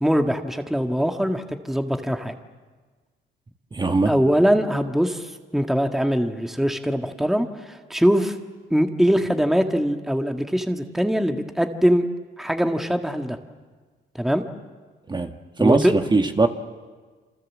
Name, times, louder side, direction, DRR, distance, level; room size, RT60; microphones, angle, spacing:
voice 1, 0.0-2.3 4.0-8.3 8.7-12.0 12.4-13.4 14.1-14.4 15.6-15.9, equal, ahead, 5 dB, 1.7 m, -22 dB
voice 2, 3.7-4.1 15.1-15.3 15.6-16.5, right 3 dB, 20° right, 5 dB, 1.7 m, -20 dB
28.0 x 26.5 x 7.4 m, 1.4 s
cardioid pair, 90°, 20 cm